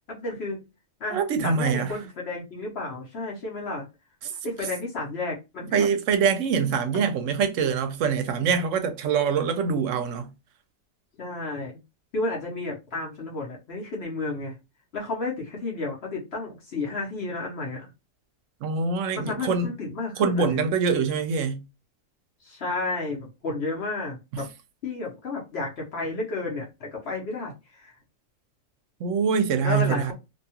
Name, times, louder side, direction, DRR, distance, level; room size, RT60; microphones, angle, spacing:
voice 1, 0.1-0.6 1.0-3.8 4.4-5.9 6.9-7.1 11.2-11.8 12.1-14.6 14.9-17.9 19.1-20.7 22.4-24.5 24.8-27.9 29.6-30.1, left 3 dB, 55° left, 1.0 m, -32 dB
voice 2, 1.1-1.9 5.7-10.3 18.6-19.7 20.2-21.6 24.3-24.4 29.0-30.1, right 6 dB, 75° right, 0.9 m, -24 dB
2.7 x 2.3 x 2.7 m
omnidirectional pair, 1.4 m